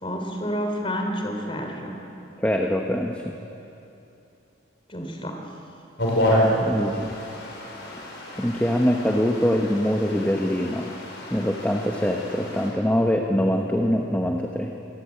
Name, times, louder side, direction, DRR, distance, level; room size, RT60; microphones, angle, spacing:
voice 1, 0.0-2.0 4.9-5.4, equal, 25° left, 3 dB, 3.5 m, -29 dB
voice 2, 2.4-3.3 6.6-7.2 8.4-10.9 11.3-14.7, equal, 10° left, 1 dB, 1.2 m, -23 dB
sound 1, 6.0-12.7, equal, 60° left, 6.2 m, -28 dB
26.5 x 19.0 x 8.6 m, 2.9 s
head